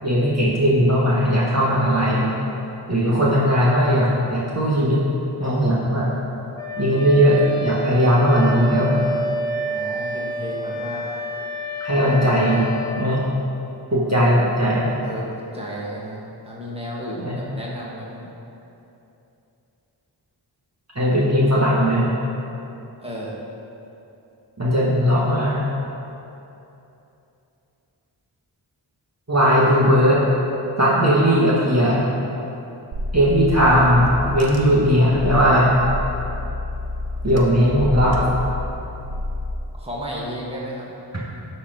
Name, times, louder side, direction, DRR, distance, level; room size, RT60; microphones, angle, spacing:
voice 1, 0.0-2.3 2.9-5.0 5.4-6.1 6.8-9.1 11.8-12.6 13.0-13.2 13.9-14.9 17.2-17.4 21.0-22.1 24.6-25.6 29.3-30.2 30.8-32.1 33.1-35.7 37.2-38.3, equal, 35° right, -7 dB, 1.8 m, -18 dB
Wind instrument woodwind instrument, 6.6-13.1, equal, 10° left, 2.0 m, -29 dB
voice 2, 9.6-11.1 12.0-12.2 15.0-18.3 23.0-23.4 37.6-37.7 39.7-40.9, equal, 15° right, -5 dB, 2.0 m, -33 dB
Car / Engine, 32.9-39.5, left 1 dB, 90° right, 0.9 m, -29 dB
12.5 x 4.5 x 5.1 m, 2.9 s
cardioid pair, 40°, 45 cm